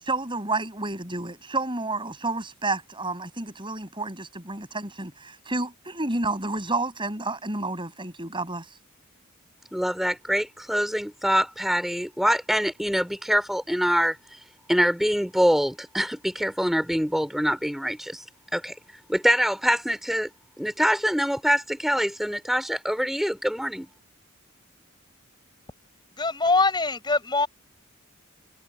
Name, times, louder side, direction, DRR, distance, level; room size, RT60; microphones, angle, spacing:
voice 1, 0.0-8.7, right 2 dB, 25° right, 8.0 m, -30 dB
voice 2, 9.7-14.2 14.7-18.2 18.5-18.7 19.1-20.3 20.6-23.9, equal, ahead, 4.7 m, -24 dB
voice 3, 26.2-27.5, left 3 dB, 20° left, 5.1 m, -23 dB
head